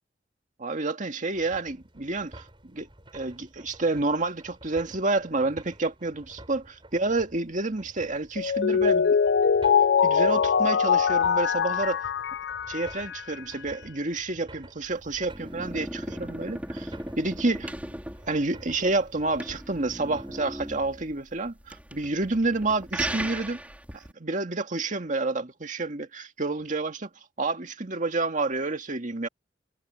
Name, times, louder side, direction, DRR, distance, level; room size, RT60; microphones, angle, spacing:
voice 1, 0.6-2.4 2.7-2.9 3.1-9.2 10.0-12.0 12.7-16.9 17.2-17.7 18.3-23.6 24.2-27.1 27.4-29.3, right 2 dB, 45° right, 1.9 m, -29 dB
sound 1, 1.3-20.9, right 1 dB, 30° right, 5.2 m, -50 dB
Mallet percussion, 8.4-13.3, left 6 dB, 65° left, 0.4 m, -23 dB
sound 2, 14.8-24.1, right 1 dB, 10° right, 4.2 m, -37 dB
head